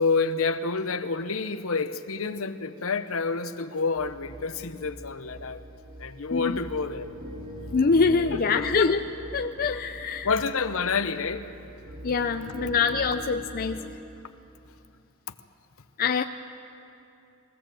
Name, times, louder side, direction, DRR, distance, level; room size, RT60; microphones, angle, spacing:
voice 1, 0.0-5.6 6.0-7.1 8.3-8.9 10.2-11.5, left 4 dB, 70° left, 11 dB, 0.8 m, -28 dB
sound 1, 3.9-13.8, equal, 25° right, 2.7 m, -42 dB
voice 2, 7.7-9.0 9.3-10.3 12.0-13.8 16.0-16.2, left 5 dB, 40° left, 7 dB, 0.5 m, -24 dB
22.0 x 17.0 x 7.7 m, 2.8 s
head